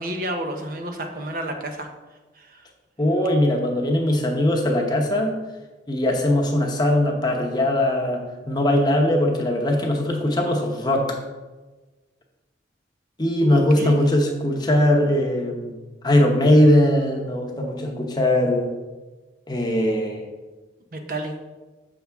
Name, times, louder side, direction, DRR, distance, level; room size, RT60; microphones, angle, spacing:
voice 1, 0.0-1.9 2.4-2.7 13.4-14.0 20.9-21.4, right 1 dB, 50° right, 4 dB, 0.7 m, -30 dB
voice 2, 3.0-5.4 5.9-11.2 13.2-15.7 16.0-18.7 19.5-20.3, left 1 dB, 25° left, 1 dB, 0.9 m, -20 dB
7.1 x 5.7 x 3.5 m, 1.2 s
head